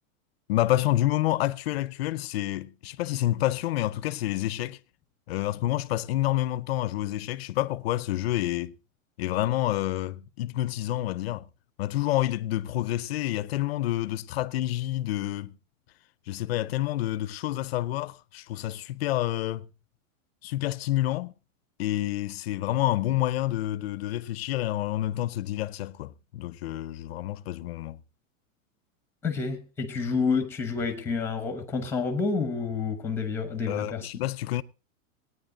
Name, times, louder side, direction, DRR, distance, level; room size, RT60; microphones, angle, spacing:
voice 1, 0.5-4.8 5.3-8.7 9.2-11.4 11.8-15.5 16.3-19.7 20.4-21.3 21.8-28.0 33.7-34.6, left 15 dB, 50° left, 0.6 m, -28 dB
voice 2, 29.2-34.1, left 5 dB, 5° left, 1.0 m, -29 dB
18.5 x 9.6 x 3.9 m
supercardioid pair, 175°, 41 cm